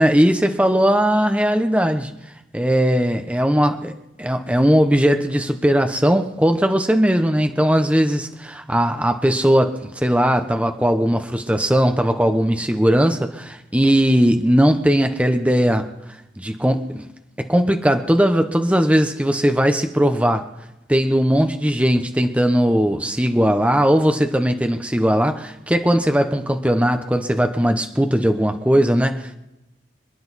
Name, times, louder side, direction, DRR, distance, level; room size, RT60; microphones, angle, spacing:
voice 1, 0.0-2.1 2.5-3.9 4.2-15.9 16.4-17.0 17.4-20.5 20.9-29.3, equal, 5° right, 6 dB, 0.9 m, -18 dB
27.0 x 10.0 x 4.2 m, 0.90 s
head